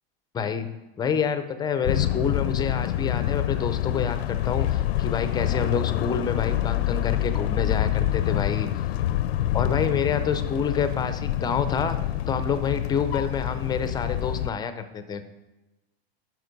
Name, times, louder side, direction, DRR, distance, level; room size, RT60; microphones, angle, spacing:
voice 1, 0.3-0.7 1.0-8.7 9.5-12.0 12.3-15.3, left 6 dB, 15° left, 10 dB, 0.4 m, -28 dB
sound 1, 1.8-14.5, left 12 dB, 90° left, 0.5 m, -26 dB
9.5 x 6.0 x 5.2 m, 1.1 s
supercardioid pair, 140°, 31 cm